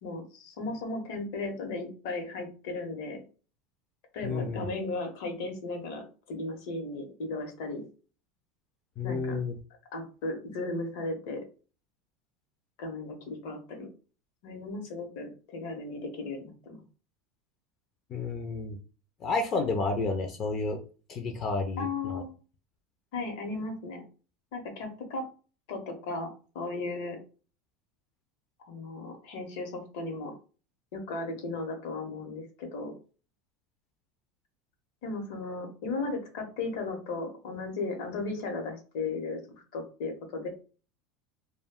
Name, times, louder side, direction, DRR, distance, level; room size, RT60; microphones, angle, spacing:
voice 1, 0.0-3.2 4.1-7.9 9.0-9.4 9.9-11.4 12.8-13.9 14.4-16.8 21.8-22.3 23.1-24.0 24.5-25.2 25.7-26.3 26.5-27.2 28.6-30.3 30.9-32.9 35.0-39.4 39.7-40.5, left 3 dB, 70° left, 5 dB, 0.9 m, -36 dB
voice 2, 4.2-4.7 9.0-9.6 18.1-18.8 19.2-20.8 21.1-22.2, left 3 dB, 35° left, 5 dB, 0.5 m, -31 dB
2.3 x 2.2 x 3.5 m, 0.37 s
supercardioid pair, 140°, 0 cm